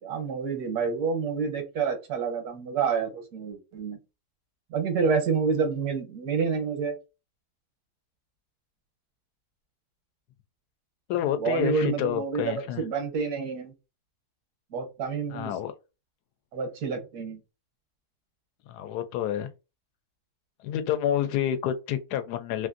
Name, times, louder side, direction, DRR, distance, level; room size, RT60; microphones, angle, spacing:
voice 1, 0.0-4.0 4.7-6.9 11.4-13.7 14.7-15.5 16.5-17.4, right 5 dB, 80° right, 1.4 m, -28 dB
voice 2, 11.1-12.8 15.3-15.7 18.7-19.5 20.6-22.7, left 10 dB, 90° left, 1.1 m, -29 dB
3.1 x 2.5 x 2.5 m
omnidirectional pair, 1.7 m